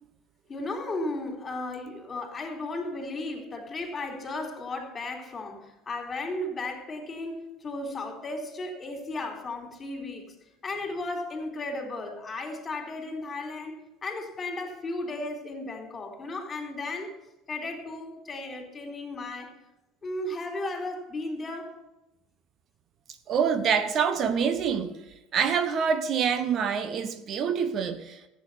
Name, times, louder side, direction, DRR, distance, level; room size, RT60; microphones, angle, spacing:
voice 1, 0.5-10.3 10.6-17.1 17.5-19.5 20.0-21.8, left 2 dB, 30° left, 2 dB, 4.1 m, -35 dB
voice 2, 23.3-25.0 25.3-28.2, right 7 dB, 50° right, 10 dB, 1.1 m, -26 dB
15.0 x 8.9 x 5.8 m, 0.94 s
hypercardioid pair, 70°, 0 cm